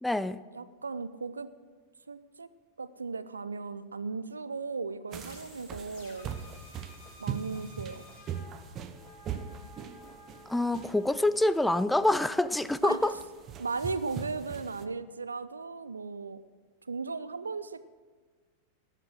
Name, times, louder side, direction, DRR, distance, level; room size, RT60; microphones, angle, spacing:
voice 1, 0.0-0.4 10.5-13.1, left 1 dB, 5° left, 14 dB, 0.4 m, -26 dB
voice 2, 0.5-1.5 2.1-2.5 2.8-6.3 7.2-8.0 12.8-13.1 13.6-16.4 16.8-17.9, right 4 dB, 75° right, 15 dB, 0.5 m, -36 dB
sound 1, 5.1-12.0, left 2 dB, 55° left, 4.9 m, -54 dB
sound 2, 5.1-14.9, right 7 dB, 30° right, 0.9 m, -41 dB
18.5 x 7.5 x 6.2 m, 1.5 s
figure-of-eight pair, 90°, 0 cm